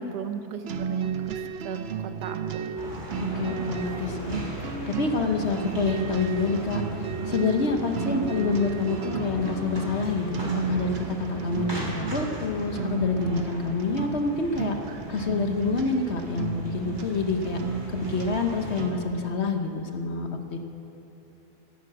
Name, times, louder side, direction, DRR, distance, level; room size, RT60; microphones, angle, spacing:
voice 1, 0.0-1.4 1.6-2.8 8.0-8.3, right 7 dB, 90° right, 8 dB, 1.4 m, -35 dB
sound 1, 0.7-19.2, right 6 dB, 60° right, 0.7 m, -34 dB
sound 2, 2.8-18.8, right 1 dB, 15° right, 2.6 m, -38 dB
voice 2, 3.2-14.8 15.1-17.6 18.1-20.6, left 4 dB, 50° left, 5 dB, 1.0 m, -27 dB
11.5 x 11.0 x 8.6 m, 3.0 s
omnidirectional pair, 1.7 m